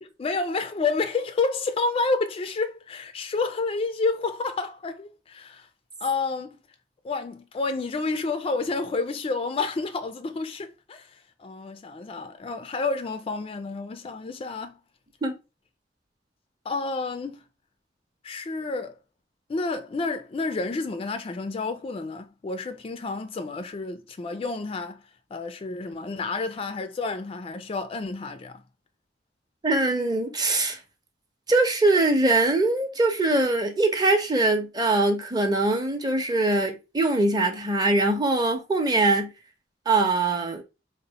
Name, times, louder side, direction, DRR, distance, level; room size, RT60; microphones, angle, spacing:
voice 1, 0.0-5.7 6.0-6.6 7.0-14.8 16.7-17.4 18.2-19.0 19.5-25.0 25.3-28.6, left 3 dB, 30° left, 0.3 m, -29 dB
voice 2, 29.6-30.8 31.5-39.3 39.9-40.6, right 2 dB, 20° right, 0.6 m, -22 dB
3.9 x 2.0 x 3.9 m
head